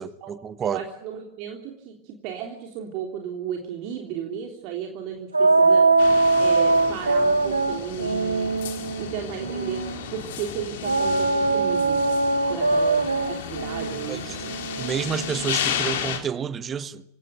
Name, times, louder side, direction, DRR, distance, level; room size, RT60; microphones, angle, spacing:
voice 1, 0.0-0.8 14.1-14.4 14.8-17.0, right 7 dB, 20° right, 1.2 m, -29 dB
voice 2, 0.6-5.9 6.4-8.6 9.0-9.8 10.1-12.0 12.5-14.6, right 8 dB, 45° right, 3.4 m, -34 dB
sound 1, 5.3-10.0 10.8-15.5, right 3 dB, 80° right, 1.6 m, -22 dB
sound 2, 6.0-16.2, left 8 dB, 55° left, 3.7 m, -33 dB
27.5 x 17.5 x 9.3 m
figure-of-eight pair, 90°, 0 cm